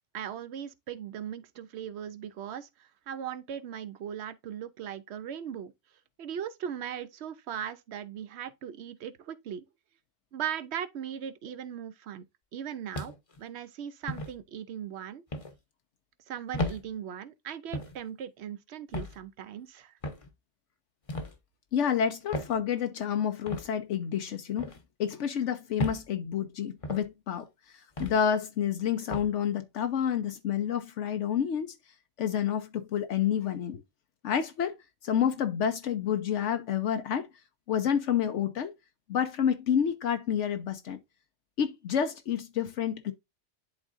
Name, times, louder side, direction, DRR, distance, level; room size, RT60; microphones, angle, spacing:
voice 1, 0.1-5.7 6.2-9.6 10.3-12.3 12.5-13.1 13.4-15.2 16.3-19.9, right 9 dB, 70° right, 0.9 m, -38 dB
sound 1, 12.9-13.4 14.1-14.3 15.3-15.5 16.5-16.8 17.7-18.0 18.9-19.2 20.0-20.3 21.1-21.4 22.3-22.6 23.5-23.7 24.6-24.8 25.8-26.0 26.8-27.1 28.0-28.2 29.1-29.3, left 1 dB, 30° left, 0.9 m, -34 dB
voice 2, 21.7-24.7 25.0-27.5 28.0-31.7 32.2-33.8 34.2-34.8 35.0-37.3 37.7-38.7 39.1-41.0 41.6-43.1, left 8 dB, 80° left, 1.0 m, -29 dB
11.0 x 3.7 x 2.5 m
omnidirectional pair, 1.2 m